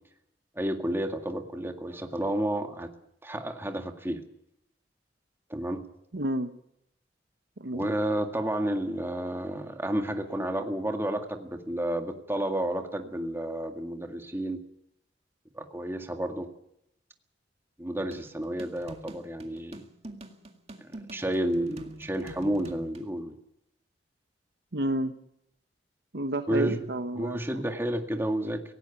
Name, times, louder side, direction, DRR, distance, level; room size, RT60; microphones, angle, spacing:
voice 1, 0.6-2.9 3.2-4.2 5.5-5.8 7.7-14.6 15.5-16.5 17.8-19.8 20.8-23.4 26.5-28.6, right 1 dB, 15° right, 5 dB, 1.9 m, -31 dB
voice 2, 6.1-6.5 7.6-7.8 24.7-25.1 26.1-27.4, right 1 dB, 65° right, 9 dB, 1.1 m, -30 dB
sound 1, 18.1-23.1, right 1 dB, 35° right, 2.0 m, -46 dB
18.0 x 17.0 x 8.5 m, 0.75 s
head